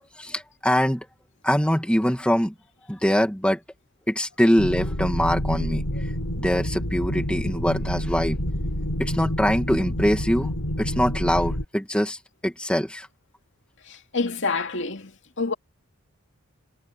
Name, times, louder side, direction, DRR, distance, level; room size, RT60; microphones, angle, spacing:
voice 1, 0.2-1.1 1.4-2.5 2.9-3.6 4.1-5.8 6.3-8.4 9.0-13.1, equal, 5° left, 2.2 m, -23 dB
sound 1, 4.6-11.6, equal, 85° left, 4.3 m, -28 dB
voice 2, 13.9-15.1 15.4-15.5, left 4 dB, 55° left, 2.6 m, -27 dB
head